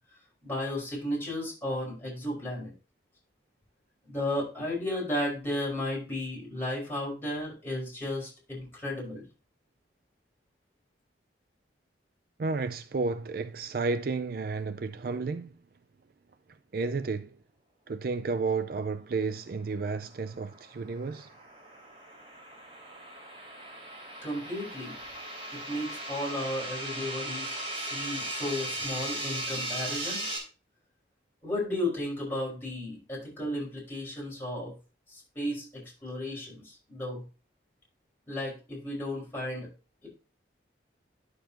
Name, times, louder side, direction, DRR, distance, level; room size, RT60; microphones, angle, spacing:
voice 1, 0.4-2.7 4.1-9.2 24.2-25.0 25.5-30.2 31.4-34.7 35.1-37.2 38.3-39.7 40.0-40.1, left 1 dB, 10° left, 5.5 m, -34 dB
voice 2, 12.4-15.5 16.7-17.4 17.9-21.3, right 4 dB, 50° right, 0.4 m, -32 dB
sound 1, 19.9-30.4, right 1 dB, 30° right, 3.4 m, -38 dB
10.5 x 6.8 x 2.9 m
head